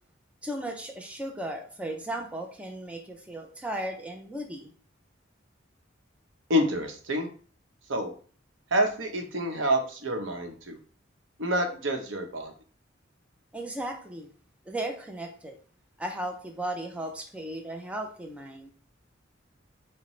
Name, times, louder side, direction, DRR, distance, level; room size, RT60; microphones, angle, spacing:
voice 1, 0.4-4.7 13.5-14.3 14.7-15.6 16.0-18.7, right 1 dB, 5° right, 2 dB, 0.5 m, -36 dB
voice 2, 6.5-7.3 7.9-8.1 8.7-10.8 11.4-12.5, equal, 80° right, 4 dB, 0.9 m, -27 dB
6.3 x 2.1 x 3.1 m, 0.42 s
head